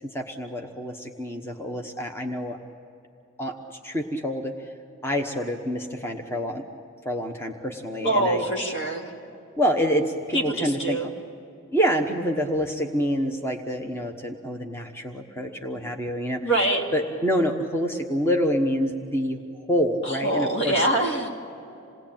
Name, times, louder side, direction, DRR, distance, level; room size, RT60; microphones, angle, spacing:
voice 1, 0.0-2.6 3.4-4.5 5.0-6.6 7.0-8.4 9.6-11.1 11.7-16.5 16.9-19.4 19.7-20.9, equal, 10° left, 3 dB, 1.1 m, -27 dB
voice 2, 8.0-9.1 10.3-11.1 16.4-16.8 20.0-21.3, right 1 dB, 60° left, 1 dB, 3.1 m, -24 dB
28.0 x 19.0 x 8.9 m, 2.8 s
head